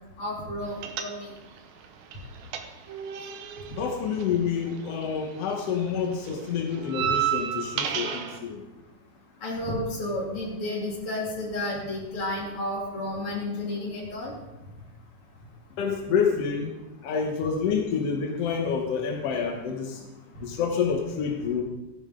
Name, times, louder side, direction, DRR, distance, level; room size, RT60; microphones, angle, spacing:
voice 1, 0.2-1.3 9.4-14.3, left 1 dB, 35° left, -4 dB, 3.6 m, -31 dB
sound 1, 0.8-1.6 1.8-5.2 5.5-8.4, right 9 dB, 90° right, 1.6 m, -31 dB
voice 2, 3.8-8.6 15.8-16.8 17.0-20.0 20.4-21.6, left 6 dB, 75° left, 1 dB, 1.4 m, -28 dB
15.5 x 10.5 x 3.8 m, 1.0 s
omnidirectional pair, 4.6 m